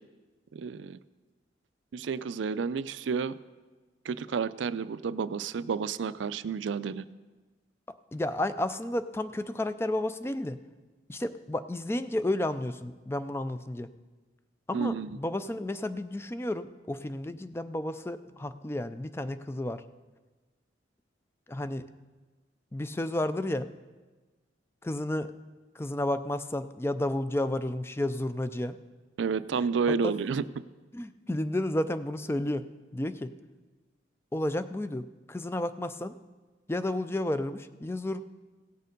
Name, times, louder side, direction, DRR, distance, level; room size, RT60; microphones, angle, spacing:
voice 1, 0.5-1.0 1.9-3.3 4.0-7.1 14.7-15.2 29.2-30.4, right 5 dB, 85° right, 16 dB, 0.4 m, -30 dB
voice 2, 8.1-10.6 11.1-13.9 14.7-19.8 21.5-21.8 22.7-23.7 24.8-25.3 25.8-28.8 30.0-30.1 30.9-32.6 32.9-33.3 34.3-36.1 36.7-38.2, left 1 dB, 15° left, 12 dB, 0.3 m, -32 dB
17.0 x 6.7 x 5.2 m, 1.3 s
head